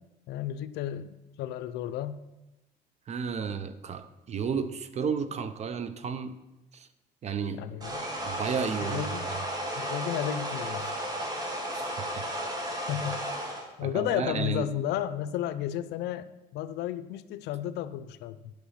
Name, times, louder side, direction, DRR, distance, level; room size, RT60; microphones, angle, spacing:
voice 1, 0.3-2.2 7.5-8.1 8.8-9.3 9.8-10.9 12.9-13.3 13.8-16.3 16.5-18.5, left 11 dB, 85° left, 13 dB, 0.5 m, -33 dB
voice 2, 3.1-6.3 6.7-6.9 7.2-7.6 8.2-9.0 11.7-12.2 13.8-14.7, right 6 dB, 40° right, 12 dB, 0.7 m, -32 dB
sound 1, 7.8-13.7, equal, 20° right, 1.7 m, -34 dB
8.8 x 6.1 x 5.7 m, 0.99 s
cardioid pair, 110°, 17 cm